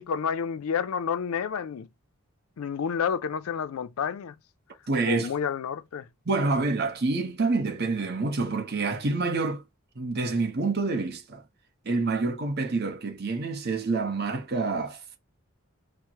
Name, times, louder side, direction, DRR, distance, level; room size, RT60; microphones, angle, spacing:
voice 1, 0.0-1.9 2.6-4.4 5.0-6.1, left 7 dB, 80° left, 0.4 m, -29 dB
voice 2, 4.9-5.3 6.3-9.6 10.0-11.4 11.8-15.2, right 3 dB, 45° right, 0.9 m, -27 dB
4.4 x 2.1 x 4.6 m
head